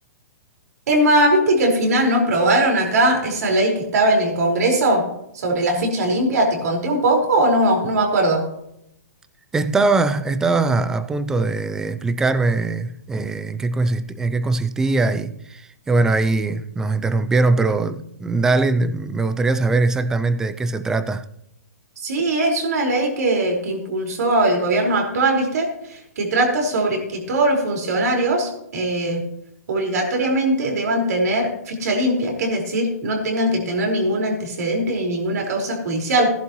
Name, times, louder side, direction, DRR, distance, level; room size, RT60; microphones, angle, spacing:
voice 1, 0.9-5.0 5.3-8.5 22.0-29.2 29.7-36.3, right 1 dB, 65° right, 4.6 m, -20 dB
voice 2, 9.5-21.2, right 3 dB, 5° right, 0.4 m, -21 dB
16.5 x 11.5 x 3.1 m
hypercardioid pair, 160°, 9 cm